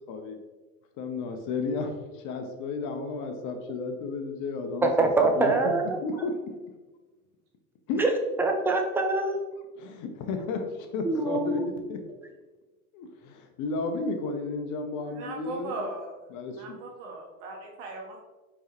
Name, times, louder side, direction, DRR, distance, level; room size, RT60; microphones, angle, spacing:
voice 1, 0.1-0.4 1.0-5.1 5.4-5.5 6.0-6.4 7.9-8.0 9.8-12.0 12.9-15.9 16.3-16.8, left 3 dB, 45° left, 5 dB, 0.8 m, -33 dB
voice 2, 4.8-6.0 8.0-8.1 8.4-9.4 11.0-11.7, right 3 dB, 5° right, 3 dB, 0.4 m, -24 dB
voice 3, 15.1-16.1 16.6-18.2, right 2 dB, 55° right, 0 dB, 1.3 m, -38 dB
4.5 x 3.3 x 3.0 m, 1.2 s
hypercardioid pair, 80°, 42 cm